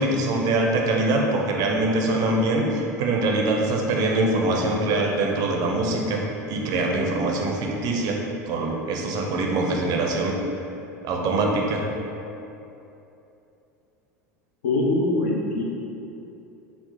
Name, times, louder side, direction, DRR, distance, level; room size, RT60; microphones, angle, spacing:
voice 1, 0.0-8.2 8.5-10.4 11.0-11.8, right 2 dB, 45° right, 0 dB, 0.5 m, -23 dB
voice 2, 14.6-15.6, left 2 dB, 70° left, -2 dB, 0.5 m, -23 dB
2.9 x 2.0 x 3.6 m, 2.8 s
hypercardioid pair, 80°, 9 cm